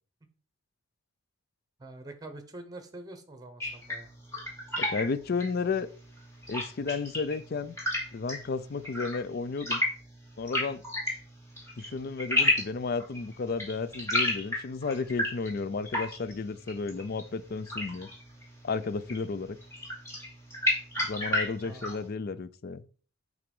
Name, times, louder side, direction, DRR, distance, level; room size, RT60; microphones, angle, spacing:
voice 1, 1.8-4.1 21.6-22.0, right 2 dB, 20° right, 0.9 m, -45 dB
sound 1, 3.6-22.1, left 1 dB, 15° left, 2.3 m, -34 dB
voice 2, 4.8-5.9 6.5-7.8 8.1-9.8 10.4-10.8 11.8-18.1 18.6-19.6 21.1-22.8, left 4 dB, 45° left, 0.4 m, -33 dB
5.8 x 3.9 x 5.3 m
head